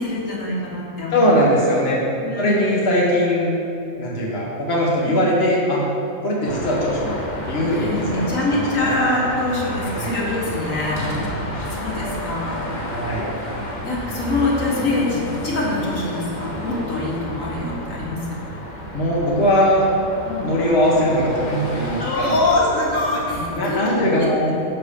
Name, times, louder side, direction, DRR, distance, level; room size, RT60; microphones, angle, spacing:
voice 1, 0.0-1.5 2.2-2.7 5.1-5.3 7.7-12.6 13.8-18.4 20.3-20.5 22.0-24.3, left 2 dB, 80° left, -4 dB, 1.9 m, -24 dB
voice 2, 1.1-2.0 2.4-3.6 4.0-5.8 6.2-9.0 9.9-10.1 12.9-13.3 18.9-19.9 20.4-22.4 23.5-24.5, equal, 55° left, -4 dB, 1.5 m, -20 dB
Car passing by / Traffic noise roadway noise / Engine, 6.4-23.6, left 1 dB, 40° left, 1.0 m, -31 dB
6.6 x 5.1 x 6.8 m, 2.7 s
omnidirectional pair, 1.3 m